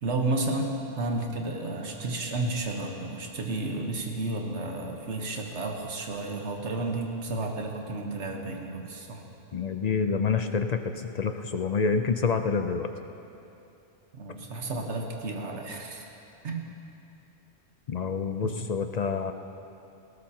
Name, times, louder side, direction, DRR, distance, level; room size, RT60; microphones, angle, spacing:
voice 1, 0.0-9.2 14.2-16.0 16.4-16.6 18.4-18.6, right 2 dB, 80° right, 2 dB, 1.5 m, -32 dB
voice 2, 9.5-12.9 17.9-19.3, left 5 dB, 45° left, 7 dB, 0.6 m, -27 dB
19.0 x 17.5 x 2.9 m, 2.8 s
omnidirectional pair, 1.2 m